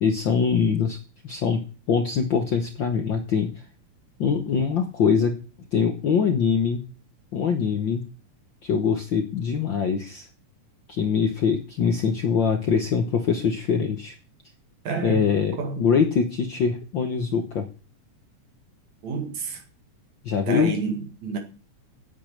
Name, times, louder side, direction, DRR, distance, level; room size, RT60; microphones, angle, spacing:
voice 1, 0.0-1.0 1.2-1.6 1.9-3.5 4.2-5.3 5.7-6.8 7.3-8.0 8.6-10.3 10.9-14.1 15.0-17.7 20.2-20.7, left 6 dB, 60° left, 1.2 m, -23 dB
voice 2, 14.8-15.9 19.0-19.6 20.5-21.4, right 5 dB, 70° right, 3.1 m, -30 dB
8.5 x 8.4 x 7.8 m
omnidirectional pair, 3.4 m